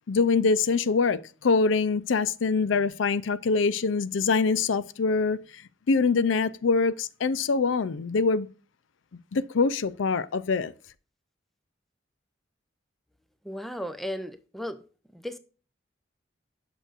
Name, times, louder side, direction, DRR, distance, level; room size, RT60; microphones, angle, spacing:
voice 1, 0.1-5.6 5.9-8.5 9.3-10.7, left 4 dB, 80° left, 0.5 m, -24 dB
voice 2, 13.4-14.8 15.1-15.4, equal, ahead, 0.6 m, -35 dB
8.9 x 6.4 x 2.5 m
head